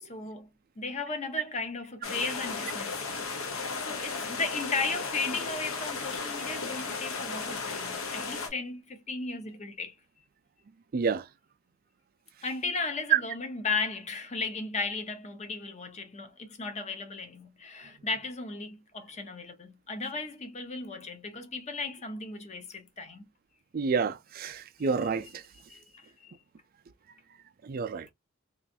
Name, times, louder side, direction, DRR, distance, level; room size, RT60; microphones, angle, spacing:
voice 1, 0.0-0.5 0.8-9.9 12.4-23.2 25.0-26.3, left 4 dB, 30° left, 0.7 m, -36 dB
sound 1, 2.0-8.5, left 4 dB, 70° left, 0.9 m, -35 dB
voice 2, 23.7-25.3 27.7-28.1, right 6 dB, 45° right, 0.4 m, -28 dB
3.1 x 2.5 x 2.6 m
head